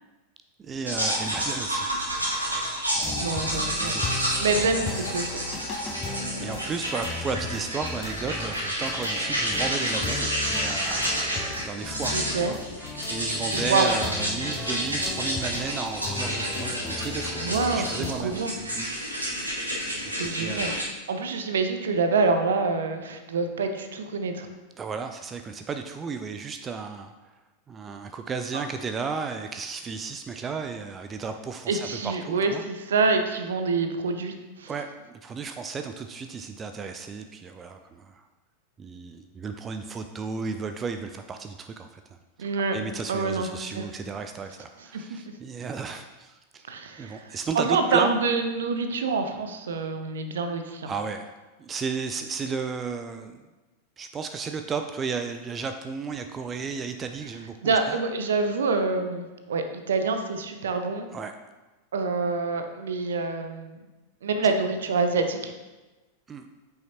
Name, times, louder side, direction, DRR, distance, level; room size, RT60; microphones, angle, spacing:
voice 1, 0.6-1.9 3.3-4.3 6.4-12.6 13.0-18.4 18.8-18.9 20.0-20.7 24.8-27.1 27.7-32.6 34.7-38.3 38.8-42.2 42.7-46.7 47.0-48.1 50.9-51.3 51.6-53.4 54.0-58.0 61.1-61.3 66.3-66.5, right 5 dB, 20° right, 7 dB, 0.4 m, -34 dB
sound 1, 0.9-20.8, equal, 85° right, 2.1 m, -30 dB
sound 2, 2.9-18.3, left 4 dB, 25° left, 0.7 m, -37 dB
voice 2, 3.2-4.0 4.4-5.5 12.1-12.5 13.5-13.9 17.4-17.9 18.1-18.5 20.1-20.7 21.1-24.5 31.7-34.7 42.4-42.8 43.1-43.5 43.7-43.8 44.9-45.3 46.7-50.9 57.6-61.1 61.9-63.8 64.2-65.5, right 4 dB, 65° right, 7 dB, 0.7 m, -26 dB
8.9 x 5.6 x 2.9 m, 1.2 s
figure-of-eight pair, 90°, 0 cm